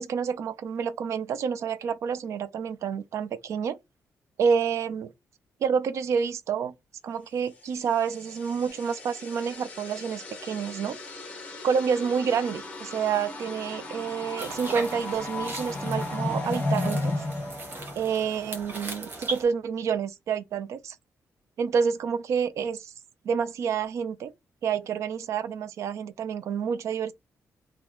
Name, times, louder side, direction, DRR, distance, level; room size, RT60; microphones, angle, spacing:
voice 1, 0.0-3.8 4.4-5.1 5.6-6.7 7.0-11.0 11.6-17.1 18.0-21.0 21.6-22.9 23.2-24.3 24.6-27.1, right 6 dB, 60° right, 0.4 m, -28 dB
sound 1, 7.8-18.5, left 2 dB, 25° left, 0.8 m, -35 dB
sound 2, 14.4-19.4, right 2 dB, 40° right, 0.8 m, -39 dB
2.9 x 2.2 x 3.7 m
wide cardioid pair, 165°, 6 cm